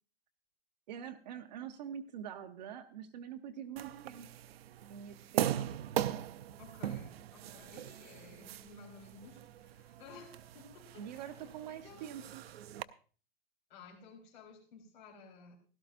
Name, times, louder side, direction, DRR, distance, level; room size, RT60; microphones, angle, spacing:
voice 1, 0.9-4.3 4.9-5.7 11.0-12.4, right 9 dB, 45° right, 7 dB, 1.0 m, -45 dB
sound 1, 3.8-12.8, right 11 dB, 75° right, 0.7 m, -40 dB
voice 2, 6.6-11.3 11.7-12.1 13.7-15.6, left 4 dB, 50° left, 1 dB, 4.3 m, -55 dB
16.5 x 13.0 x 2.6 m, 0.39 s
supercardioid pair, 175°, 31 cm